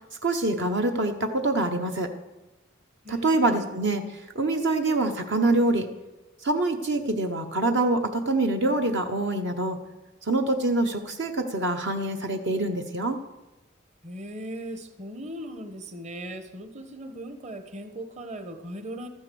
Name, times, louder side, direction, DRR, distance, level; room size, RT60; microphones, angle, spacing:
voice 1, 0.2-2.1 3.1-5.9 6.4-9.8 10.2-13.2, right 2 dB, 60° right, 5 dB, 0.9 m, -25 dB
voice 2, 3.0-3.7 14.0-19.1, right 1 dB, 35° right, 8 dB, 1.2 m, -38 dB
13.5 x 9.5 x 6.9 m, 1.1 s
head